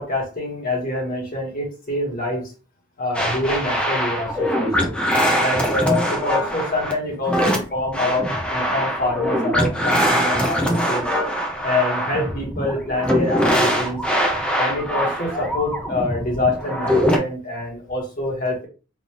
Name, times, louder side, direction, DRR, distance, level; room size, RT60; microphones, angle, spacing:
voice 1, 0.0-2.5 3.0-4.9 5.4-11.1 11.6-14.0 14.6-18.7, left 2 dB, 45° left, -2 dB, 1.7 m, -26 dB
sound 1, 3.1-17.2, equal, 5° left, 0.7 m, -22 dB
3.8 x 2.6 x 3.2 m, 0.34 s
head